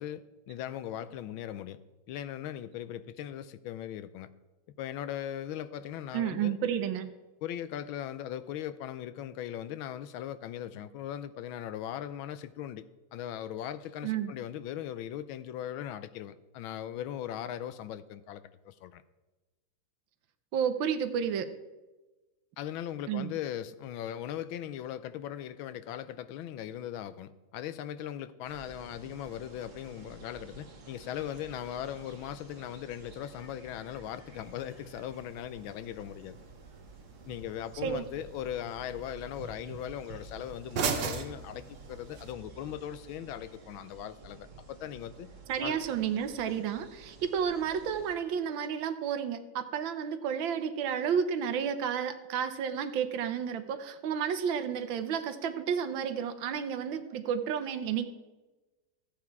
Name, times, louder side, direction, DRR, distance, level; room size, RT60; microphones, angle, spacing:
voice 1, 0.0-1.8 2.1-4.3 4.8-6.6 7.4-12.8 13.1-19.0 22.6-36.4 37.2-45.3 45.6-45.8, left 11 dB, 85° left, 14 dB, 1.4 m, -39 dB
voice 2, 6.1-7.1 14.0-14.3 20.5-21.5 23.1-23.3 37.8-38.0 45.5-58.1, right 8 dB, 75° right, 10 dB, 1.5 m, -31 dB
sound 1, 28.4-48.1, right 4 dB, 45° right, 1.6 m, -52 dB
sound 2, 34.3-42.3, right 6 dB, 60° right, 1.5 m, -40 dB
14.0 x 8.5 x 4.6 m, 1.2 s
omnidirectional pair, 2.2 m